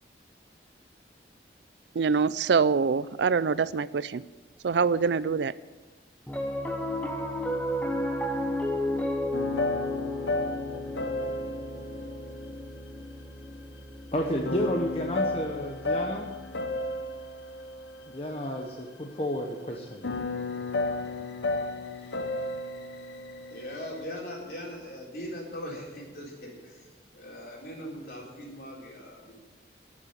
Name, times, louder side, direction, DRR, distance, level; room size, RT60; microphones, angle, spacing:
voice 1, 2.0-4.2 4.6-5.5, right 5 dB, 80° right, 17 dB, 0.4 m, -24 dB
Piano, 6.3-16.8, left 1 dB, 10° left, 1.0 m, -33 dB
sound 1, 9.3-13.4 14.5-18.8 19.8-24.0, left 2 dB, 85° left, 0.9 m, -33 dB
voice 2, 14.1-16.3 18.1-20.1, equal, 35° left, 0 dB, 1.0 m, -31 dB
voice 3, 23.5-26.9 27.1-29.4, equal, 60° left, -3 dB, 3.9 m, -40 dB
11.5 x 7.3 x 9.7 m, 1.3 s
head